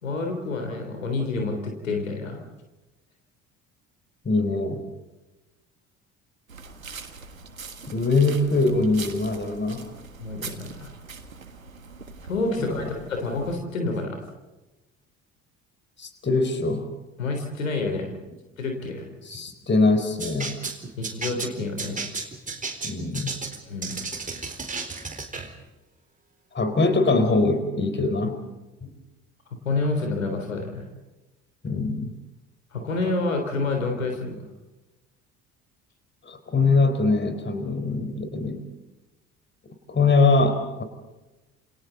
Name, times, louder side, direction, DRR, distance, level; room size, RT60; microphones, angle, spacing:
voice 1, 0.0-2.4 10.2-10.9 12.3-14.2 17.2-18.1 18.6-19.1 21.0-22.0 23.7-24.0 29.7-30.9 32.7-34.4, left 3 dB, 80° left, 4 dB, 3.7 m, -28 dB
voice 2, 4.2-4.8 7.9-9.9 12.6-12.8 16.0-16.9 19.3-20.6 22.8-23.3 26.5-28.4 28.8-28.9 31.6-32.1 36.3-38.6 39.9-40.8, left 3 dB, 25° left, 8 dB, 4.6 m, -22 dB
sound 1, 6.5-13.5, right 4 dB, 85° right, 1.6 m, -42 dB
sound 2, 20.2-25.5, right 4 dB, 20° right, 4.2 m, -33 dB
29.0 x 28.5 x 4.0 m, 1.1 s
figure-of-eight pair, 55°, 40 cm